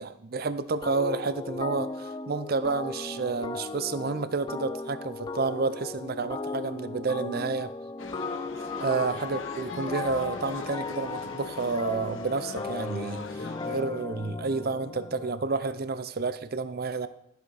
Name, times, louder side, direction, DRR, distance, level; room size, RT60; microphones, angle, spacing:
voice 1, 0.0-7.7 8.8-17.1, right 4 dB, 50° right, 12 dB, 0.5 m, -30 dB
sound 1, 0.8-15.4, left 3 dB, 20° left, 0.3 m, -36 dB
sound 2, 8.0-13.8, left 3 dB, 70° left, 0.8 m, -41 dB
13.0 x 7.9 x 4.1 m, 0.83 s
head